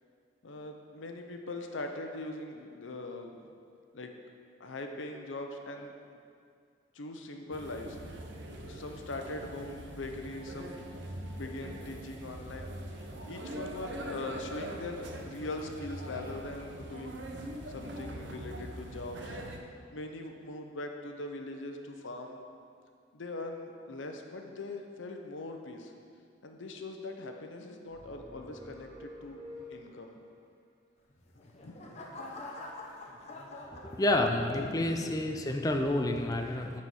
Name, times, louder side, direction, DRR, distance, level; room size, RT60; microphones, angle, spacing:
voice 1, 0.4-3.4 3.9-4.1 4.6-5.9 6.9-8.2 8.5-10.9 11.3-12.7 13.2-17.2 17.7-19.4 19.9-22.4 23.1-25.9 26.4-29.4 29.7-30.1 31.6-31.7 34.6-35.2, left 2 dB, 80° left, 4 dB, 0.7 m, -41 dB
sound 1, 7.5-19.6, right 1 dB, 70° right, 0.8 m, -42 dB
sound 2, 27.9-30.3, left 1 dB, 15° right, 1.8 m, -49 dB
sound 3, 31.1-34.7 35.2-35.6, left 2 dB, 35° left, 0.8 m, -46 dB
voice 2, 33.9-36.8, left 1 dB, 20° left, 4 dB, 0.4 m, -29 dB
9.4 x 4.3 x 6.3 m, 2.3 s
head